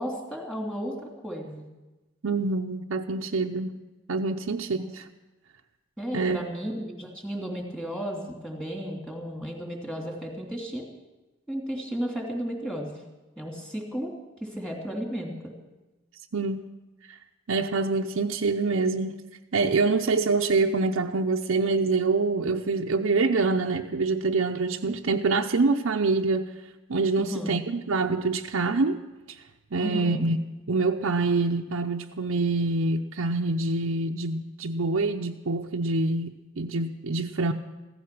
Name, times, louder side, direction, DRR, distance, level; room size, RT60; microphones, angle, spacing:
voice 1, 0.0-1.6 6.0-10.9 11.5-13.0 13.4-14.1 14.4-15.5 27.2-27.6 29.8-30.3, equal, 5° left, 0 dB, 2.8 m, -33 dB
voice 2, 2.2-3.7 4.1-5.1 6.1-6.4 16.3-16.6 17.1-17.2 17.5-19.2 19.5-26.5 26.9-29.0 29.7-30.4 30.7-37.5, right 3 dB, 85° right, 1 dB, 0.7 m, -25 dB
15.5 x 14.0 x 6.1 m, 1.1 s
head